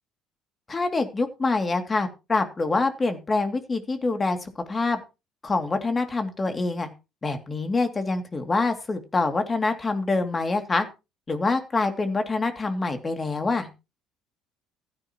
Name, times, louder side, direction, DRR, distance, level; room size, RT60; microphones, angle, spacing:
voice 1, 0.7-5.0 5.4-6.9 7.2-10.9 11.3-13.7, left 3 dB, 25° left, 6 dB, 2.6 m, -25 dB
15.5 x 12.5 x 3.0 m, 0.28 s
hypercardioid pair, 60°, 0 cm